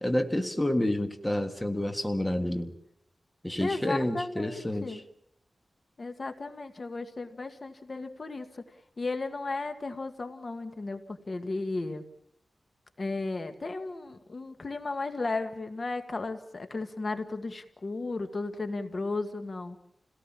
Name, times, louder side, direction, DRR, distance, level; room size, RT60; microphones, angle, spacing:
voice 1, 0.0-2.7 3.4-5.0, left 1 dB, 10° left, 6 dB, 1.6 m, -29 dB
voice 2, 3.6-5.0 6.0-8.7 9.0-12.0 13.0-19.8, left 3 dB, 45° left, 8 dB, 1.7 m, -34 dB
28.5 x 18.0 x 7.5 m, 0.74 s
wide cardioid pair, 115°, 0 cm